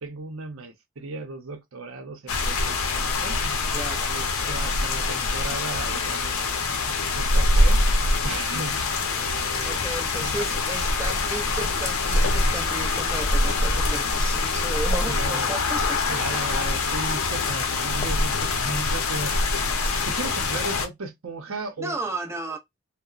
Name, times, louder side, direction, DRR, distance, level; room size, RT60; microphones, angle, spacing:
voice 1, 0.0-3.4 4.0-7.8 8.2-9.8 15.0-15.7 16.1-19.4 19.9-22.2, right 3 dB, 80° right, 0.7 m, -36 dB
sound 1, 2.3-20.9, left 3 dB, 80° left, 0.6 m, -24 dB
voice 2, 3.7-4.2 9.6-16.4 21.8-22.6, right 2 dB, 15° right, 0.4 m, -34 dB
sound 2, 14.9-17.0 17.5-19.2 19.6-20.6, left 2 dB, 30° left, 0.6 m, -44 dB
2.8 x 2.1 x 2.3 m
head